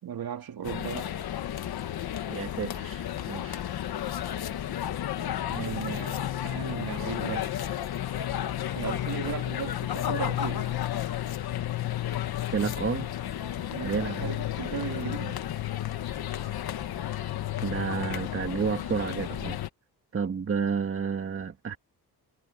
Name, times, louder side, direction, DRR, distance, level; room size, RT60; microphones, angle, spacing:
voice 1, 0.0-1.1 5.5-7.5 8.7-10.7 13.7-13.9 14.2-15.4, right 9 dB, 65° right, 3.2 m, -36 dB
sound 1, 0.6-19.7, left 11 dB, 70° left, 1.3 m, -32 dB
voice 2, 2.3-3.6 12.5-13.1 13.8-14.3 17.6-19.6 20.1-21.8, right 6 dB, 35° right, 1.5 m, -30 dB
wide cardioid pair, 140°, 39 cm